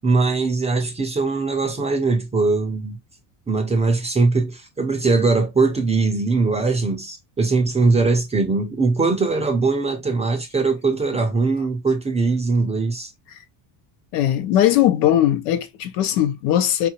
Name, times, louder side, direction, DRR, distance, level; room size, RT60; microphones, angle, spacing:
voice 1, 0.0-3.0 3.5-13.1, right 3 dB, 15° right, 0.3 m, -21 dB
voice 2, 14.1-16.9, left 12 dB, 90° left, 0.8 m, -19 dB
3.9 x 2.4 x 2.8 m
cardioid pair, 140°, 49 cm